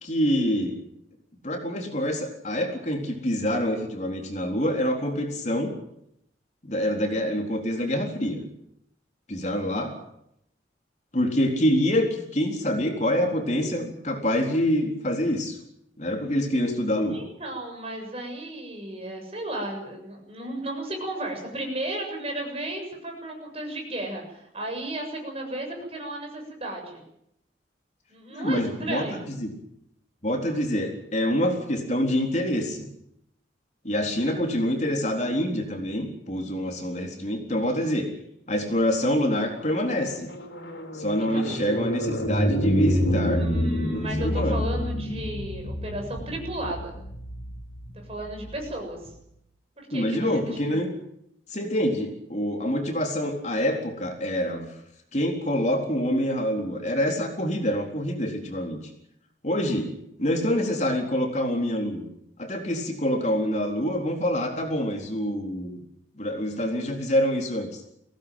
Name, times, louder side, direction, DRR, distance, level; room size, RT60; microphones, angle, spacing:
voice 1, 0.0-0.8 1.4-5.7 6.6-8.4 9.3-9.9 11.1-15.6 16.0-17.2 28.3-29.5 30.2-32.9 33.8-38.1 38.5-40.3 40.9-43.4 43.9-44.6 49.9-50.9 51.5-54.7 55.1-58.8 59.4-59.9 60.2-62.1 62.4-65.8 66.2-67.8, equal, 40° left, 2 dB, 4.0 m, -26 dB
voice 2, 17.1-27.0 28.1-29.2 41.3-41.6 43.3-46.9 47.9-49.1 49.8-50.8, right 1 dB, 35° right, 2 dB, 7.3 m, -34 dB
sound 1, 39.2-48.8, equal, 90° left, 4.5 m, -28 dB
22.5 x 17.5 x 9.2 m, 0.77 s
head